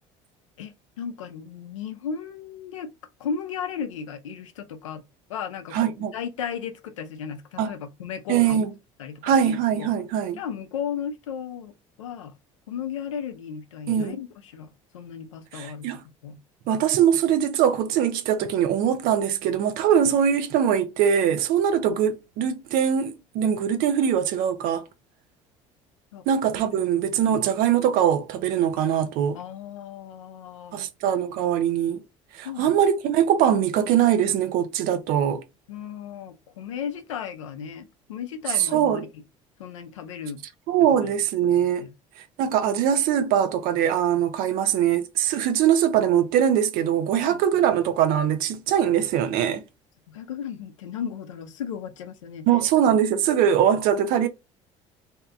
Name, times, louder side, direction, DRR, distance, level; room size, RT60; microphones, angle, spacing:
voice 1, 0.6-2.9 3.2-5.0 5.3-8.6 9.0-9.9 10.4-12.3 12.7-15.9 16.2-16.4 26.1-26.2 27.2-27.4 29.3-30.8 32.4-32.7 35.7-39.1 39.6-40.4 40.8-40.9 41.4-41.9 47.3-47.6 50.1-52.5, left 7 dB, 85° left, 0.5 m, -35 dB
voice 2, 5.7-6.1 7.6-7.7 8.3-8.7 9.2-10.4 13.9-14.1 15.5-16.0 16.7-24.9 26.3-29.4 30.7-32.0 32.3-35.4 38.6-39.1 40.7-41.9 42.4-49.6 52.5-54.3, right 9 dB, 65° right, 0.5 m, -22 dB
2.7 x 2.3 x 2.3 m
hypercardioid pair, 65°, 16 cm